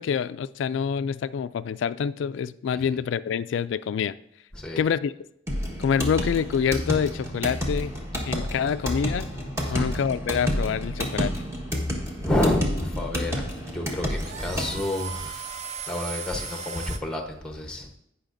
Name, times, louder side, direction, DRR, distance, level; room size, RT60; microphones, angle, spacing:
voice 1, 0.0-4.1 4.8-5.1 5.8-7.9 8.3-9.3 9.7-11.3, left 7 dB, 75° left, 14 dB, 0.3 m, -26 dB
sound 1, 5.5-14.7, equal, 15° right, 1.3 m, -30 dB
voice 2, 9.6-10.0 12.2-15.5 15.9-17.9, left 1 dB, 5° left, 2 dB, 1.0 m, -29 dB
sound 2, 12.7-17.0, right 6 dB, 35° right, 0.6 m, -38 dB
17.0 x 5.7 x 2.6 m, 0.75 s
head